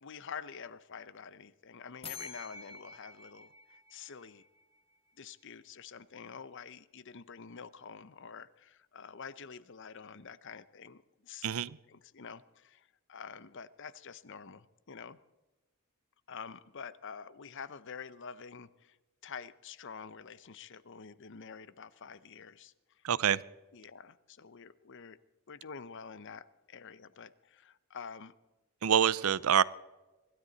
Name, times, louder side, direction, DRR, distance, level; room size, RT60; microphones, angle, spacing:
voice 1, 0.0-4.4 5.2-11.5 11.9-15.2 16.3-19.0 19.2-23.0 23.7-25.2 25.5-28.3, left 6 dB, 55° left, 16 dB, 0.7 m, -47 dB
sound 1, 2.0-4.8, left 5 dB, 25° left, 1.6 m, -48 dB
voice 2, 11.4-11.8 23.0-23.4 28.8-29.6, right 8 dB, 70° right, 20 dB, 0.5 m, -26 dB
24.5 x 13.0 x 4.0 m, 1.1 s
head